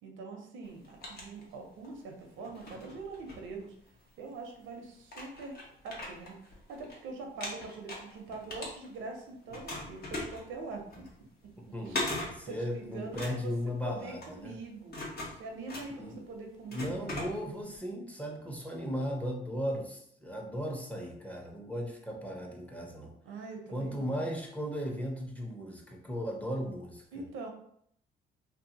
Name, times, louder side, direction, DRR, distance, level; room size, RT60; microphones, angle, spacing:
voice 1, 0.0-3.7 4.2-5.6 5.8-6.4 6.7-11.1 11.9-12.1 12.5-13.5 13.8-15.0 15.3-17.1 23.2-24.2 27.1-27.5, right 3 dB, 85° right, 3 dB, 0.6 m, -43 dB
sound 1, 0.6-2.0 2.4-4.1 4.7-4.8 5.1-7.0 7.2-9.2 9.5-17.8, left 1 dB, 50° left, 0.9 m, -40 dB
voice 2, 11.7-14.6 16.0-16.2 16.7-23.1 23.7-27.2, equal, 5° left, 0 dB, 0.6 m, -36 dB
2.7 x 2.4 x 2.7 m, 0.69 s
cardioid pair, 90°, 20 cm